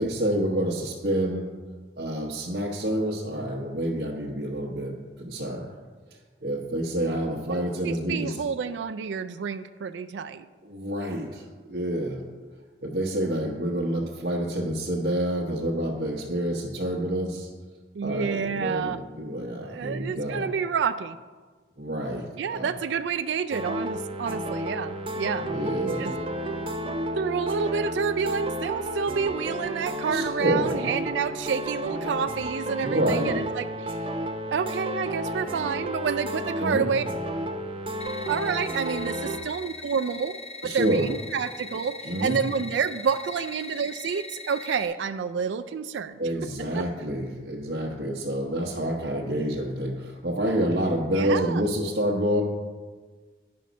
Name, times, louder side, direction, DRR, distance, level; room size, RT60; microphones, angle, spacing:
voice 1, 0.0-1.5 2.0-5.7 6.4-8.4 10.6-12.2 12.8-17.5 18.0-20.5 21.8-22.7 25.4-26.1 30.1-30.8 32.8-33.4 36.6-36.9 40.6-41.1 42.0-42.4 46.2-52.4, right 1 dB, 65° right, -3 dB, 1.0 m, -28 dB
voice 2, 7.5-10.5 17.9-19.0 19.6-21.2 22.4-25.5 26.0-26.1 27.2-34.0 34.5-37.0 38.3-40.4 40.6-46.2 46.7-46.9 51.1-51.7, right 6 dB, 80° right, 11 dB, 0.3 m, -29 dB
sound 1, 23.5-39.4, equal, 30° right, 0.6 m, -32 dB
sound 2, 38.0-44.9, left 3 dB, 35° left, 0.9 m, -41 dB
9.4 x 5.7 x 5.1 m, 1.4 s
head